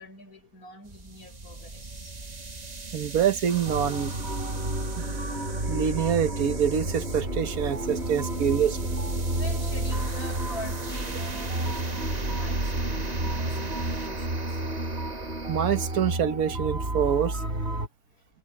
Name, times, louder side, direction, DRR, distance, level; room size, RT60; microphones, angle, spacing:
voice 1, 0.0-2.2 8.3-14.6, left 1 dB, 90° left, 7.0 m, -46 dB
sound 1, 0.8-16.2, right 3 dB, 30° right, 1.5 m, -39 dB
voice 2, 2.9-4.1 5.7-8.8 15.5-17.4, right 8 dB, 80° right, 1.6 m, -25 dB
sound 2, 3.6-17.9, right 1 dB, 45° right, 6.3 m, -31 dB
omnidirectional pair, 1.5 m